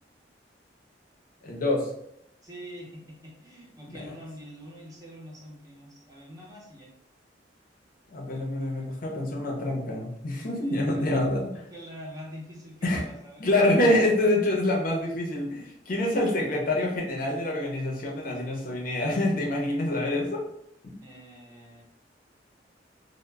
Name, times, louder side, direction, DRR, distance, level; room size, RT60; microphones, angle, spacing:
voice 1, 1.4-1.9 3.9-4.0 8.1-11.6 12.8-13.0 13.4-20.4 20.8-21.0, left 1 dB, 55° left, -1 dB, 0.5 m, -26 dB
voice 2, 2.4-6.9 10.6-11.3 11.5-13.5 21.0-21.8, equal, 20° right, -4 dB, 0.6 m, -45 dB
2.0 x 2.0 x 3.3 m, 0.76 s
head